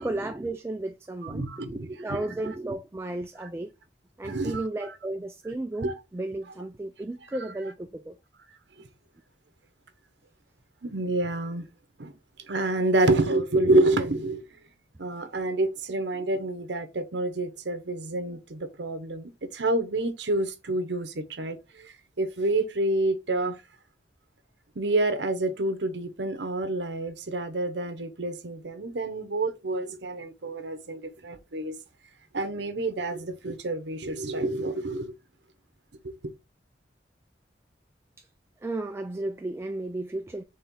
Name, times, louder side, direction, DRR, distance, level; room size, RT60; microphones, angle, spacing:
voice 1, 0.0-3.7 4.2-8.2 38.2-38.3 38.6-40.4, right 2 dB, 15° right, 0.3 m, -34 dB
voice 2, 1.2-2.2 4.2-4.6 5.8-5.9 10.8-11.7 12.0-12.1 12.5-14.4 15.0-23.6 24.8-31.8 32.3-35.1 36.0-36.1, right 2 dB, 75° right, 0.9 m, -28 dB
4.3 x 3.4 x 3.6 m
head